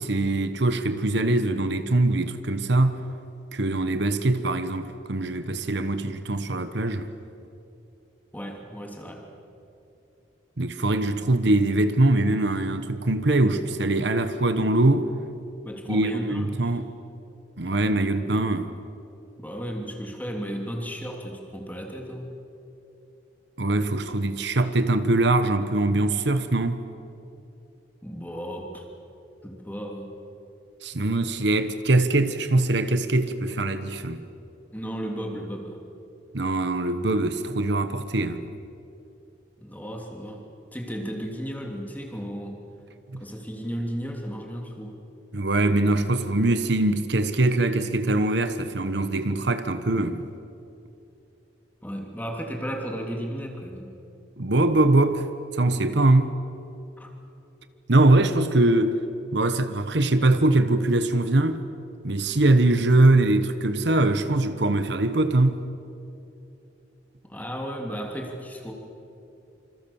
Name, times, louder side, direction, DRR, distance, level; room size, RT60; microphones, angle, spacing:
voice 1, 0.0-3.0 3.5-7.1 10.6-15.1 15.9-16.9 17.6-18.7 23.6-26.8 30.8-34.2 36.3-38.5 43.1-43.2 45.3-50.3 54.4-55.3 55.5-56.3 57.9-59.0 59.3-61.6 62.0-65.6, right 2 dB, 65° right, 1.2 m, -22 dB
voice 2, 8.3-9.3 15.6-16.8 17.6-17.8 19.4-22.4 28.0-28.8 29.4-30.2 34.7-35.8 39.6-40.4 40.7-42.6 43.2-45.0 51.8-53.9 57.0-57.1 67.2-68.7, equal, 10° left, 2.9 m, -34 dB
27.5 x 26.5 x 7.1 m
head